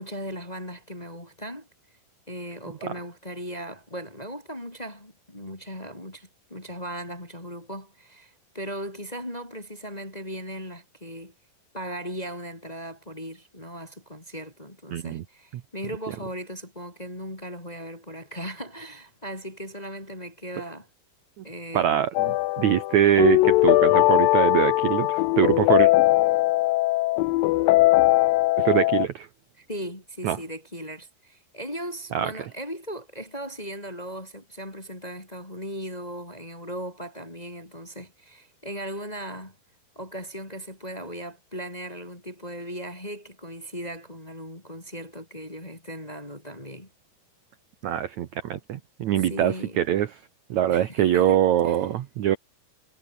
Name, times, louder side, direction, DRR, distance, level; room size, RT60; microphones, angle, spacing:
voice 1, 0.0-1.7 2.3-11.3 11.7-20.9 21.4-22.0 29.6-39.6 39.9-46.9 49.1-49.8 50.7-51.8, equal, 15° left, 2.0 m, -37 dB
voice 2, 14.9-15.2 21.4-21.5 21.7-25.9 28.6-29.3 30.2-30.4 32.1-32.3 47.8-50.1 50.5-52.4, right 11 dB, 70° right, 1.8 m, -23 dB
sound 1, 22.2-29.1, left 19 dB, 80° left, 2.0 m, -20 dB
omnidirectional pair, 4.8 m